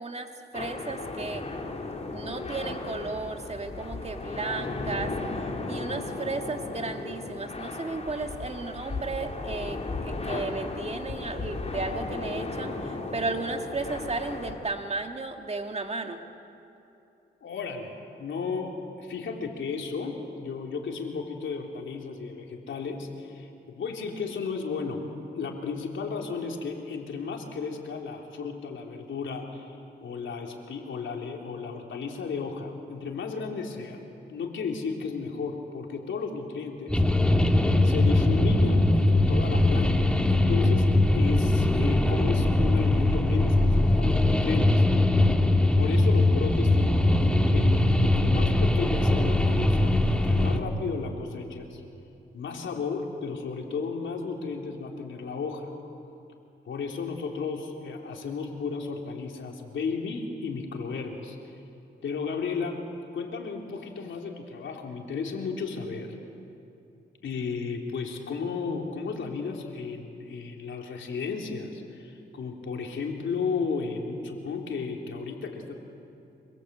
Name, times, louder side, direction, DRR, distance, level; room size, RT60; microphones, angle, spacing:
voice 1, 0.0-1.4 2.1-5.1 5.6-16.2, right 3 dB, 35° right, 4 dB, 2.3 m, -34 dB
sound 1, 0.5-14.5, left 3 dB, 35° left, 3.7 m, -35 dB
voice 2, 17.4-25.0 25.3-34.0 34.3-37.0 37.8-45.3 45.7-51.8 52.3-55.7 56.6-61.5 62.0-62.8 63.1-66.1 67.2-75.7, left 5 dB, 75° left, 1 dB, 3.6 m, -34 dB
sound 2, 36.9-50.6, left 1 dB, 5° left, 2.2 m, -21 dB
26.0 x 25.0 x 8.3 m, 2.8 s
cardioid pair, 80°, 20 cm